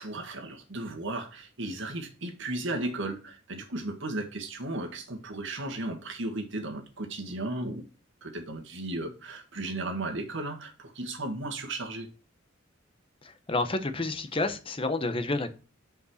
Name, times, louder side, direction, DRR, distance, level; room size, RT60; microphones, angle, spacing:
voice 1, 0.0-7.8 8.2-12.1, right 2 dB, 65° right, 1.7 m, -35 dB
voice 2, 13.2-15.5, left 2 dB, 25° left, 0.9 m, -30 dB
5.4 x 5.3 x 6.4 m
head